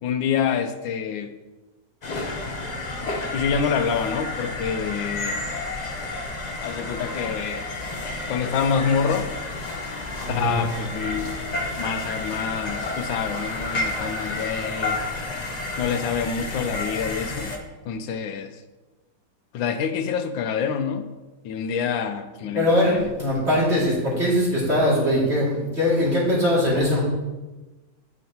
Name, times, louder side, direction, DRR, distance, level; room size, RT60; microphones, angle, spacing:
voice 1, 0.0-1.3 3.3-5.4 6.6-7.7 8.3-9.3 10.3-11.4 11.8-15.0 15.8-17.5 17.8-18.6 19.5-21.1 21.4-23.1, left 6 dB, 85° left, 8 dB, 1.4 m, -27 dB
sound 1, 2.0-17.6, left 2 dB, 45° left, 0.5 m, -30 dB
voice 2, 22.5-27.0, left 1 dB, 35° right, -7 dB, 2.7 m, -21 dB
9.1 x 7.5 x 2.9 m, 1.2 s
omnidirectional pair, 2.0 m